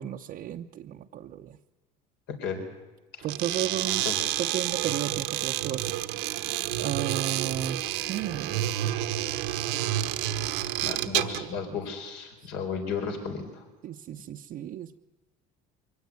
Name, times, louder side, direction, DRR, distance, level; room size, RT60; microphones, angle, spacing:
voice 1, 0.0-1.6 3.2-4.0 4.4-6.0 6.8-7.8 8.1-8.9 10.8-11.2 13.8-15.0, right 10 dB, 50° right, 1 dB, 0.8 m, -34 dB
sound 1, 3.2-11.5, right 14 dB, 75° right, 1.2 m, -29 dB
voice 2, 10.8-13.6, left 6 dB, 70° left, 4 dB, 4.1 m, -34 dB
23.0 x 17.0 x 9.5 m, 1.2 s
supercardioid pair, 95°, 19 cm